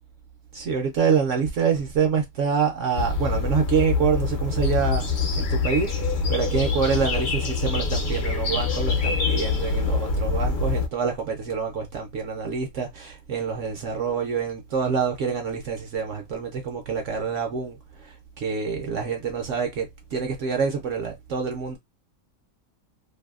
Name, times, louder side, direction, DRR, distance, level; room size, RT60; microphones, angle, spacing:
voice 1, 0.5-5.0 5.4-5.9 6.3-21.8, right 6 dB, 65° right, 0.8 m, -26 dB
sound 1, 2.9-10.9, left 4 dB, 55° left, 0.8 m, -25 dB
2.6 x 2.5 x 2.3 m
omnidirectional pair, 1.6 m